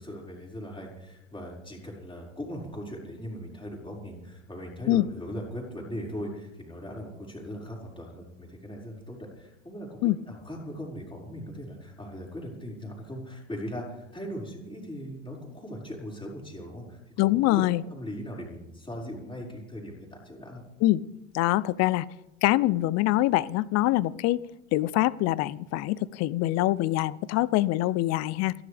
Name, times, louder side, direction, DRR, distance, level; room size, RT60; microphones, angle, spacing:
voice 1, 0.0-20.6, equal, 15° left, -2 dB, 5.5 m, -39 dB
voice 2, 17.2-17.8 20.8-21.0 21.3-22.1 22.4-24.4 24.7-28.5, left 16 dB, 45° left, 21 dB, 0.7 m, -24 dB
30.0 x 11.0 x 3.5 m, 0.92 s
hypercardioid pair, 90°, 39 cm